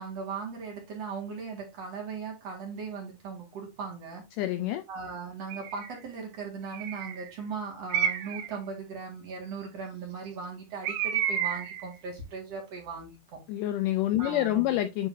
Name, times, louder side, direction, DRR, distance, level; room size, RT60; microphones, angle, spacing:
voice 1, 0.0-4.2 4.9-13.4 14.2-14.7, right 5 dB, 50° right, 2.6 m, -38 dB
voice 2, 4.4-4.8 13.5-15.1, left 13 dB, 90° left, 1.8 m, -27 dB
Bird, 5.5-6.0 6.7-7.3 7.9-8.5 10.8-11.8, right 9 dB, 85° right, 2.8 m, -30 dB
10.5 x 3.9 x 2.6 m
omnidirectional pair, 4.3 m